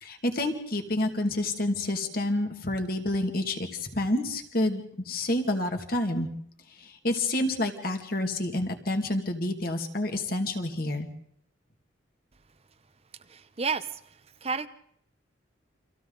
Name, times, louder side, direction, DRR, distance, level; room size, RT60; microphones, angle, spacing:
voice 1, 0.0-6.3 6.8-11.1, left 1 dB, 50° left, 5 dB, 2.2 m, -29 dB
voice 2, 13.2-14.7, right 5 dB, 30° right, 12 dB, 0.7 m, -32 dB
29.0 x 25.5 x 4.0 m, 0.68 s
head